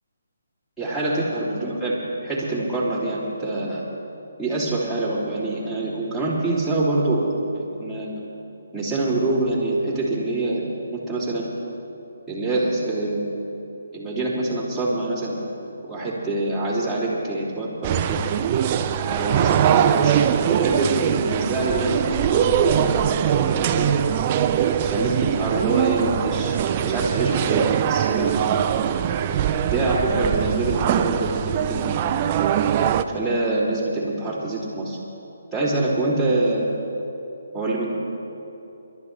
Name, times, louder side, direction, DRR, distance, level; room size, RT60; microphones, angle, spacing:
voice 1, 0.8-3.8 4.4-7.3 7.5-8.2 8.7-10.6 10.9-11.5 12.3-13.3 13.9-15.4 15.9-18.3 19.1-20.2 20.5-22.9 23.3-23.9 24.8-28.3 28.7-28.8 29.6-32.2 33.0-35.0 35.5-36.7 37.5-37.9, right 2 dB, 5° left, -10 dB, 3.0 m, -25 dB
sound 1, 17.8-33.0, right 9 dB, 25° right, 0.5 m, -22 dB
28.0 x 12.0 x 3.3 m, 3.0 s
hypercardioid pair, 165°, 0 cm